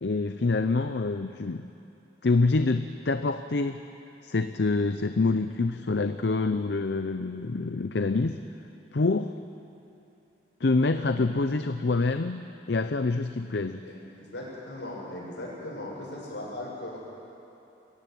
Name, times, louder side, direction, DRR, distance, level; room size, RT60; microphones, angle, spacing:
voice 1, 0.0-1.7 2.2-3.8 4.2-8.4 8.9-9.3 10.6-13.8, left 3 dB, 70° left, 9 dB, 0.6 m, -26 dB
voice 2, 13.8-17.0, left 1 dB, 85° left, -4 dB, 7.3 m, -38 dB
22.0 x 15.5 x 9.4 m, 2.9 s
head